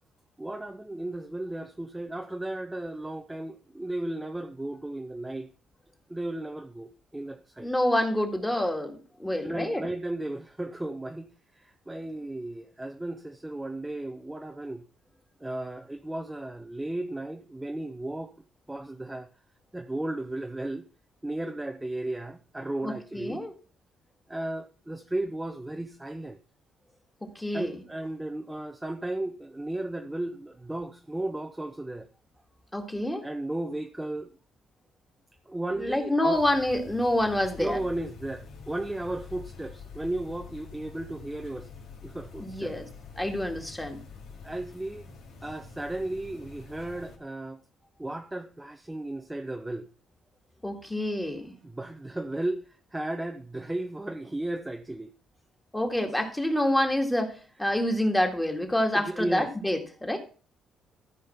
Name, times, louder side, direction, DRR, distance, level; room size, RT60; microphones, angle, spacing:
voice 1, 0.4-5.5 6.1-7.7 9.4-11.3 11.6-14.8 15.4-18.3 18.7-19.3 19.7-20.9 21.2-23.4 24.3-26.4 27.5-32.1 33.2-34.3 35.5-36.4 37.6-41.7 42.0-42.8 44.4-45.1 45.4-47.6 48.0-49.9 51.6-55.1 58.9-59.5, right 1 dB, 10° right, 0.7 m, -34 dB
voice 2, 7.6-9.8 22.8-23.5 27.2-27.7 32.7-33.3 35.8-37.8 42.4-42.9 43.2-44.0 50.6-51.6 55.7-60.2, left 1 dB, 10° left, 2.0 m, -27 dB
sound 1, 36.3-47.2, left 5 dB, 85° left, 3.0 m, -46 dB
13.5 x 5.2 x 5.8 m
cardioid pair, 115°, 0 cm